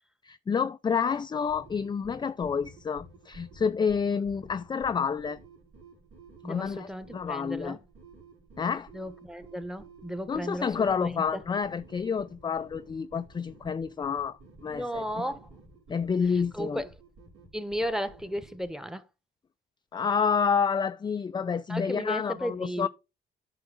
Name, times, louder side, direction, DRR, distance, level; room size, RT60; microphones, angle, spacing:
voice 1, 0.2-5.4 6.4-7.8 8.6-8.9 10.3-15.0 15.9-16.8 19.9-22.9, left 6 dB, 25° left, 0.4 m, -29 dB
sound 1, 1.3-18.7, right 2 dB, 90° right, 4.3 m, -53 dB
voice 2, 6.4-7.8 8.9-11.4 14.7-15.5 16.3-16.9 17.5-19.0 21.7-22.9, equal, ahead, 1.0 m, -34 dB
9.5 x 5.8 x 3.9 m
cardioid pair, 90°, 20 cm